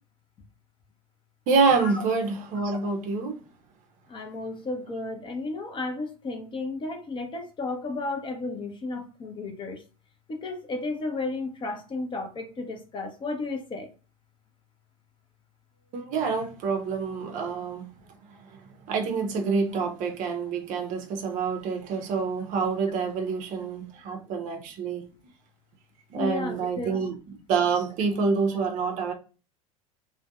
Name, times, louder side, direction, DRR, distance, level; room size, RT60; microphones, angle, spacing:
voice 1, 1.5-3.4 15.9-17.9 18.9-25.0 26.1-27.2 27.5-29.1, right 5 dB, 45° right, 0.6 m, -27 dB
voice 2, 4.1-9.8 10.3-13.9 26.2-27.0, left 3 dB, 25° left, 0.6 m, -33 dB
2.5 x 2.1 x 2.3 m
hypercardioid pair, 80°, 18 cm